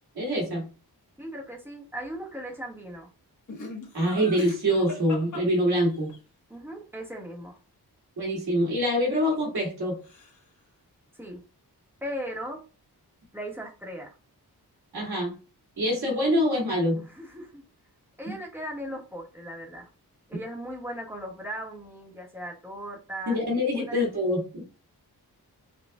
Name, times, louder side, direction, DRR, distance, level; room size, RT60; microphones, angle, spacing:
voice 1, 0.2-0.7 3.9-6.1 8.2-10.0 14.9-15.4 15.8-17.0 23.3-24.6, equal, 70° right, -1 dB, 2.2 m, -25 dB
voice 2, 1.2-3.1 6.5-7.6 11.1-11.4 12.0-12.6 13.3-14.1 15.9-16.4 17.0-17.6 18.2-19.9 20.3-23.4 23.7-24.1, equal, 5° right, -1 dB, 1.2 m, -38 dB
Laughter, 3.5-6.2 9.0-9.8 10.0-10.6, left 2 dB, 50° left, 1.4 m, -41 dB
6.4 x 2.4 x 2.3 m, 0.33 s
wide cardioid pair, 110°, 39 cm